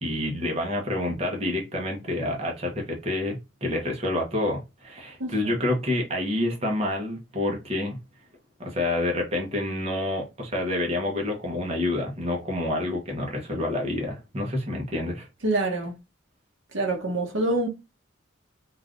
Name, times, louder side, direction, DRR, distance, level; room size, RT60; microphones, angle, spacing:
voice 1, 0.0-8.0 8.6-15.3, left 1 dB, 30° right, 0.8 m, -28 dB
voice 2, 5.2-5.5 15.4-15.9 16.7-17.7, right 2 dB, 75° right, 1.0 m, -26 dB
3.4 x 2.5 x 2.4 m
head